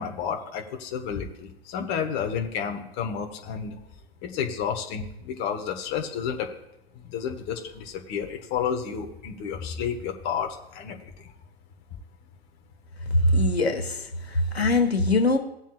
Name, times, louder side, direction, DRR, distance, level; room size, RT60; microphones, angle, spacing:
voice 1, 0.0-3.7 4.2-6.5 7.1-11.0, left 7 dB, 35° left, 4 dB, 1.3 m, -31 dB
voice 2, 13.1-15.4, left 2 dB, 80° left, 5 dB, 1.4 m, -22 dB
17.0 x 7.3 x 2.3 m, 0.85 s
figure-of-eight pair, 105°, 31 cm